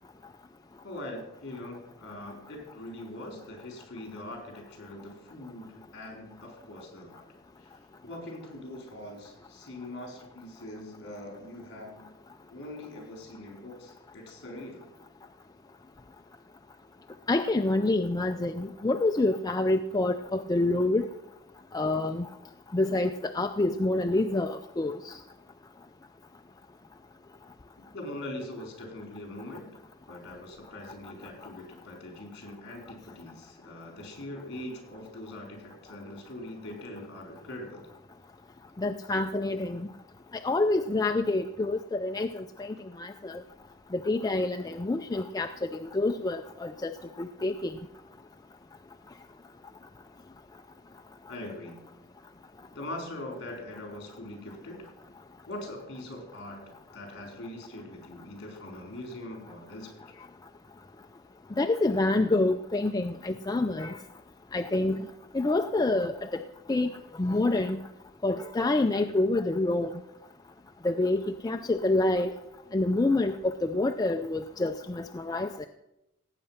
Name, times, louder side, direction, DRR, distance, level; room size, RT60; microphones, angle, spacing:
voice 1, 0.8-7.2 7.6-12.1 12.5-14.9 27.9-29.8 30.1-37.9 51.3-51.8 52.7-54.9 55.5-56.6 56.9-60.1, left 1 dB, 55° left, 2 dB, 4.4 m, -42 dB
voice 2, 17.3-21.1 21.7-22.3 22.7-25.1 38.8-39.9 40.4-43.4 43.9-47.7 61.6-64.0 64.5-65.0 65.3-66.4 66.7-66.9 67.2-67.8 68.2-69.9 70.8-72.3 72.7-75.7, left 2 dB, 15° left, 6 dB, 0.4 m, -27 dB
17.0 x 8.7 x 5.8 m, 0.90 s
head